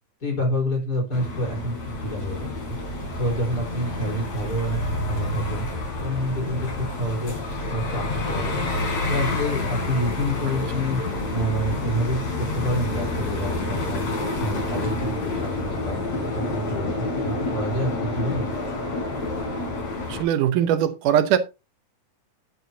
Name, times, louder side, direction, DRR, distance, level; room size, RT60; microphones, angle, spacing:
voice 1, 0.2-2.8 3.2-4.8 5.1-5.7 6.0-7.3 7.7-8.7 9.1-11.0 11.3-14.1 14.4-18.5, equal, 30° left, 4.5 m, -28 dB
sound 1, 1.1-20.2, left 2 dB, 55° left, 5.2 m, -28 dB
voice 2, 20.1-21.4, right 10 dB, 80° right, 2.4 m, -21 dB
12.0 x 9.6 x 2.8 m
omnidirectional pair, 3.7 m